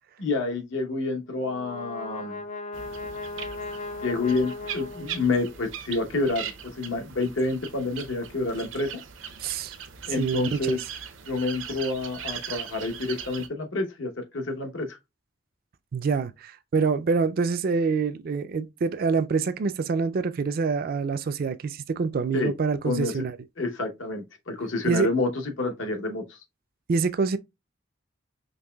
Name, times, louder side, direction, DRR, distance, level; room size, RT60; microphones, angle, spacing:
voice 1, 0.2-2.4 4.0-9.0 10.1-10.8 11.3-15.0 22.3-22.5 22.8-23.2 23.6-26.4, left 3 dB, 75° left, 0.9 m, -28 dB
Brass instrument, 1.3-5.7, left 3 dB, 40° left, 0.3 m, -37 dB
sound 1, 2.7-13.5, right 8 dB, 80° right, 0.7 m, -40 dB
voice 2, 9.4-9.8 10.2-10.7 15.9-23.4 24.8-25.1 26.9-27.4, right 4 dB, 50° right, 0.4 m, -26 dB
5.3 x 2.9 x 2.2 m
head